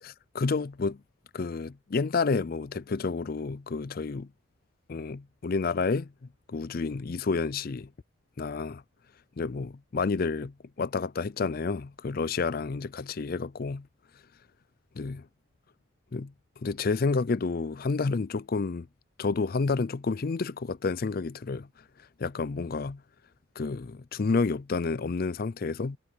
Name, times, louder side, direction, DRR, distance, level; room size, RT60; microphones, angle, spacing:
voice 1, 0.0-1.0 1.3-4.3 4.9-6.1 6.5-7.9 8.4-8.8 9.4-13.9 15.0-15.3 16.1-18.9 19.2-21.7 22.2-23.0 23.6-26.0, left 4 dB, 45° left, 0.4 m, -30 dB
head